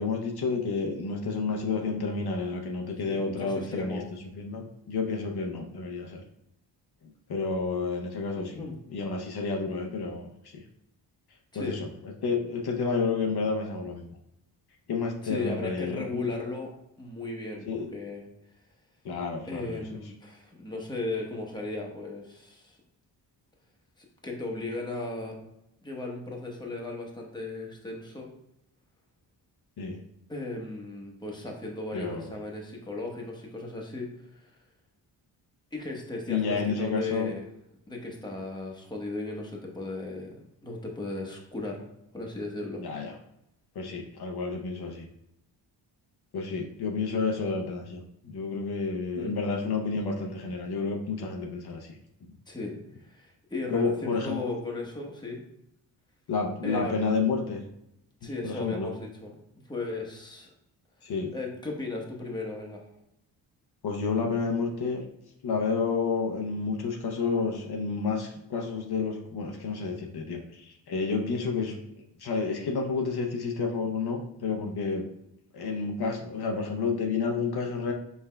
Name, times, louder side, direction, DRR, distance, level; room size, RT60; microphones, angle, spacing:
voice 1, 0.0-6.2 7.3-8.6 8.9-10.3 10.5-10.6 11.5-11.9 12.2-14.1 14.9-16.2 17.7-17.9 19.0-19.8 29.8-30.0 31.9-32.3 36.3-37.3 42.8-43.2 43.7-45.1 46.3-52.0 53.7-54.5 56.3-57.6 58.2-58.9 61.0-61.3 63.8-65.0 65.4-71.8 72.2-75.1 75.5-77.9, left 4 dB, 60° left, 1 dB, 0.7 m, -30 dB
voice 2, 3.0-4.1 8.4-8.8 11.5-11.8 15.2-16.7 17.0-18.2 19.5-22.8 24.0-25.4 25.8-28.3 30.3-34.5 35.7-37.5 37.9-41.8 42.1-42.8 49.2-49.4 52.5-52.8 53.1-55.4 56.6-57.2 58.2-59.3 59.7-60.5 61.3-62.8, left 2 dB, 10° left, 0 dB, 0.9 m, -36 dB
5.5 x 3.4 x 2.2 m, 0.82 s
cardioid pair, 80°, 45 cm